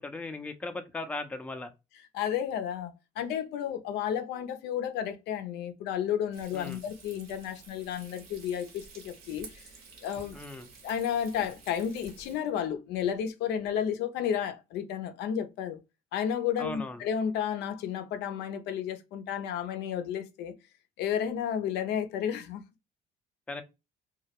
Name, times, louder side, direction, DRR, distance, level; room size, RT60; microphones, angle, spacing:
voice 1, 0.0-1.7 6.5-6.8 10.3-10.7 16.6-17.0 23.5-23.6, left 3 dB, 10° left, 0.4 m, -38 dB
voice 2, 2.1-9.5 10.0-10.4 10.8-15.8 16.1-20.5 21.0-22.6, left 9 dB, 80° left, 0.4 m, -32 dB
Frying (food), 6.3-12.4, right 4 dB, 65° right, 0.9 m, -51 dB
2.2 x 2.0 x 2.8 m
cardioid pair, 110°, 17 cm